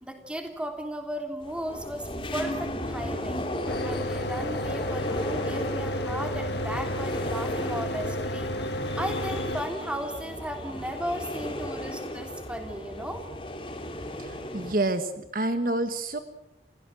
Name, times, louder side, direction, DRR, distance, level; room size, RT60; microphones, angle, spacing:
voice 1, 0.0-3.4 3.8-8.5 8.9-13.2, equal, 5° right, 4 dB, 3.2 m, -35 dB
sound 1, 1.4-14.7, left 1 dB, 30° left, 3.4 m, -35 dB
Mechanical fan, 3.7-9.6, left 1 dB, 70° left, 1.8 m, -32 dB
voice 2, 14.5-15.1 15.3-16.2, right 2 dB, 50° right, 9 dB, 1.5 m, -27 dB
29.0 x 17.0 x 7.7 m, 0.85 s
head